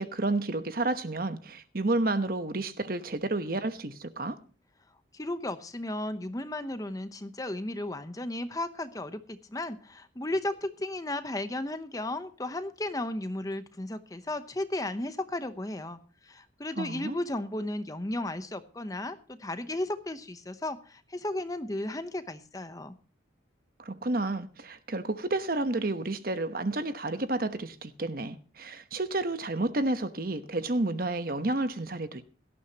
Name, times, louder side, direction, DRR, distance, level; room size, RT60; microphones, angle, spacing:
voice 1, 0.0-4.4 16.8-17.1 23.8-32.2, right 2 dB, 50° right, 1.0 m, -30 dB
voice 2, 5.1-23.0, left 1 dB, 20° left, 0.8 m, -34 dB
17.5 x 13.5 x 2.9 m
head